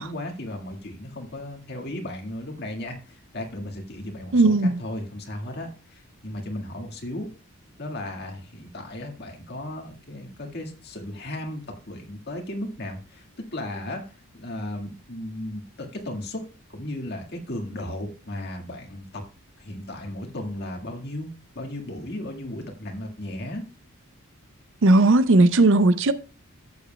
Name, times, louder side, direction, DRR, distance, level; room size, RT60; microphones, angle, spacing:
voice 1, 0.0-7.3 7.8-19.3 19.6-21.3 21.5-23.6, left 1 dB, 45° left, 1.8 m, -35 dB
voice 2, 4.3-4.8 24.8-26.1, right 2 dB, 60° right, 0.5 m, -17 dB
14.5 x 7.2 x 2.2 m
head